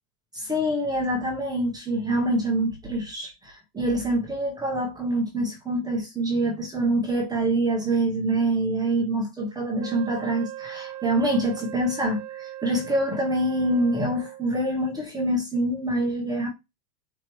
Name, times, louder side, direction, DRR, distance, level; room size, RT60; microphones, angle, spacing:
voice 1, 0.3-16.5, right 1 dB, 10° right, 0.8 m, -25 dB
Wind instrument woodwind instrument, 9.8-14.5, right 14 dB, 50° right, 0.7 m, -39 dB
4.6 x 2.8 x 3.0 m
supercardioid pair, 160°, 46 cm